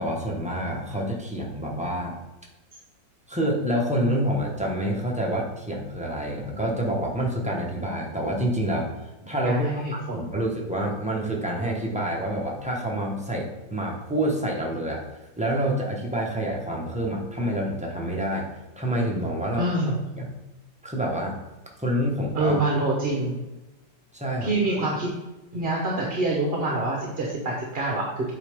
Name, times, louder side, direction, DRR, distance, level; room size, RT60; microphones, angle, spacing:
voice 1, 0.0-2.2 3.3-9.7 10.1-15.0 15.4-18.5 18.8-19.6 20.2-20.3 20.8-21.4 21.8-22.6 24.1-24.5, right 1 dB, 5° right, -2 dB, 1.0 m, -27 dB
voice 2, 9.4-10.2 19.6-19.9 22.3-23.4 24.4-25.1 25.5-28.3, right 2 dB, 40° right, -2 dB, 1.1 m, -26 dB
8.0 x 4.9 x 3.6 m, 1.0 s
omnidirectional pair, 1.9 m